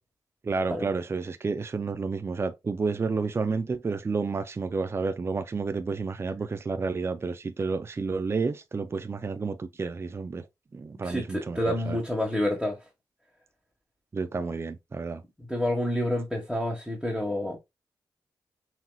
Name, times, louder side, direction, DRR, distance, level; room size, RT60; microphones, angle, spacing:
voice 1, 0.4-10.5 10.7-12.0 14.1-15.2, right 4 dB, 30° right, 0.5 m, -30 dB
voice 2, 11.0-12.8 15.5-17.6, left 1 dB, 5° left, 1.4 m, -28 dB
6.0 x 2.9 x 2.3 m
cardioid pair, 70°, 8 cm